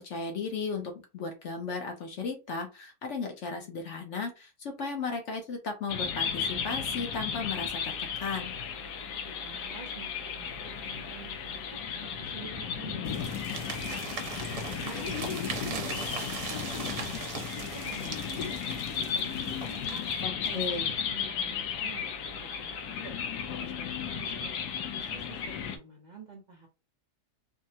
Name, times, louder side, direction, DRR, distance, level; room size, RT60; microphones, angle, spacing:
voice 1, 0.0-7.9 8.2-8.5 20.2-20.9, left 4 dB, 60° left, 3 dB, 0.8 m, -35 dB
sound 1, 5.9-25.8, left 7 dB, 80° left, 1.1 m, -34 dB
voice 2, 9.3-14.0 14.4-20.0 20.5-23.2 23.5-26.7, right 4 dB, 85° right, -1 dB, 0.4 m, -49 dB
sound 2, 13.1-20.2, right 5 dB, 70° right, 1.3 m, -40 dB
3.5 x 2.0 x 2.7 m, 0.28 s
omnidirectional pair, 1.7 m